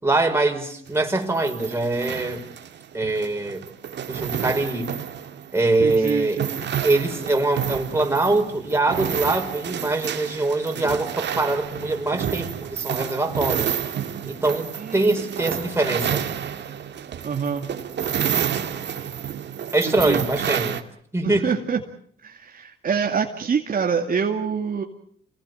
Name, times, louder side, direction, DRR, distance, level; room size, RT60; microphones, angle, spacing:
voice 1, 0.0-2.4 2.9-3.6 4.1-4.9 5.5-6.4 6.8-13.7 14.3-14.7 14.9-16.3 19.7-20.8 21.1-21.6, right 2 dB, 10° right, 3 dB, 5.2 m, -23 dB
sound 1, 0.9-20.8, right 9 dB, 60° right, 2.4 m, -30 dB
voice 2, 5.8-6.7 14.8-15.5 17.2-17.7 19.8-20.2 21.2-21.8 22.2-24.8, right 6 dB, 45° right, 2 dB, 2.5 m, -26 dB
28.5 x 19.5 x 8.1 m, 0.64 s
cardioid pair, 90°, 20 cm